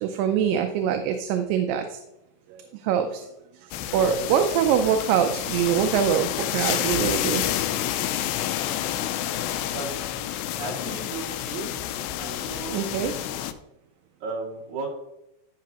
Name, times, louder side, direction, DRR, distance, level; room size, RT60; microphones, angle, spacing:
voice 1, 0.0-2.0 2.9-3.2 3.9-7.4 12.7-13.1, right 8 dB, 80° right, 6 dB, 2.2 m, -23 dB
sound 1, 3.7-13.5, left 12 dB, 85° left, 2.4 m, -29 dB
voice 2, 9.7-10.3 10.6-11.7 12.2-12.9 14.2-14.9, right 3 dB, 55° right, -4 dB, 3.8 m, -35 dB
12.5 x 6.1 x 2.9 m, 0.87 s
omnidirectional pair, 4.1 m